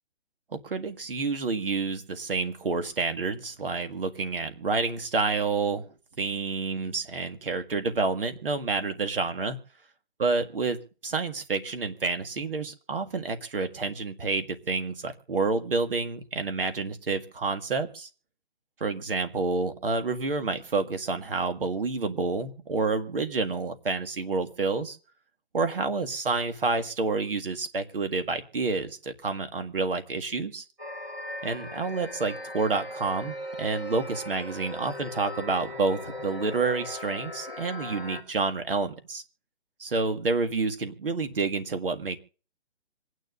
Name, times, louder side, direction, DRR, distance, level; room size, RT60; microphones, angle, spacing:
voice 1, 0.5-5.9 6.2-9.6 10.2-18.1 18.8-25.0 25.5-30.6 31.4-39.2 39.8-42.2, right 4 dB, 55° right, 8 dB, 1.9 m, -29 dB
sound 1, 30.8-38.2, left 1 dB, 5° right, 1.8 m, -38 dB
26.5 x 9.7 x 2.6 m, 0.37 s
hypercardioid pair, 180°, 33 cm